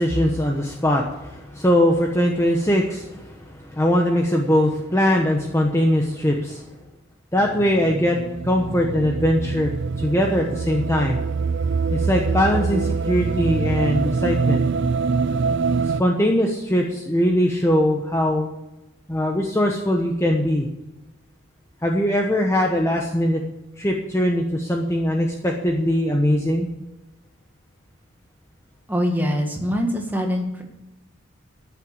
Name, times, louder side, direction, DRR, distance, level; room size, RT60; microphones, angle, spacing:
voice 1, 0.0-6.6 7.3-8.2 8.4-9.7 10.0-11.2 11.9-14.6 16.0-18.5 19.1-20.7 21.8-23.4 23.8-26.7, equal, 15° left, 1 dB, 1.0 m, -21 dB
sound 1, 7.4-16.0, right 4 dB, 55° right, 0.5 m, -24 dB
voice 2, 28.9-30.6, equal, 10° right, 1 dB, 1.9 m, -23 dB
13.0 x 7.0 x 8.6 m, 1.0 s
head